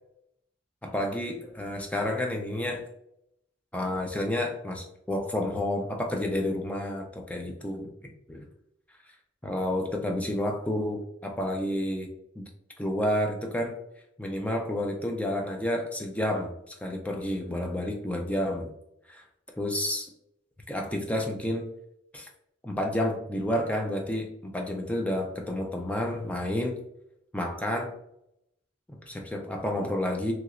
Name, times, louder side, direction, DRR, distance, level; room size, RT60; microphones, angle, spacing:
voice 1, 0.8-2.8 3.7-8.4 9.4-12.1 12.4-12.5 12.8-13.7 14.2-18.7 19.1-19.2 19.6-20.1 20.7-21.6 22.1-22.3 22.6-26.8 27.3-27.9 28.9-30.3, left 1 dB, 10° left, 1 dB, 0.4 m, -30 dB
3.0 x 2.9 x 2.4 m, 0.78 s
head